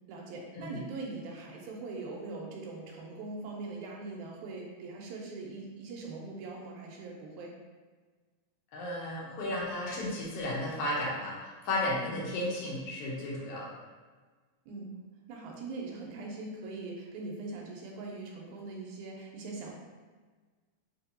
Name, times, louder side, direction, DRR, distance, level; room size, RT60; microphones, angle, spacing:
voice 1, 0.1-7.5 12.0-12.3 14.7-15.0 15.3-19.7, right 3 dB, 85° right, -1 dB, 2.1 m, -41 dB
voice 2, 8.7-13.7, left 1 dB, 70° left, -4 dB, 1.5 m, -34 dB
4.6 x 2.8 x 2.7 m, 1.4 s
omnidirectional pair, 3.4 m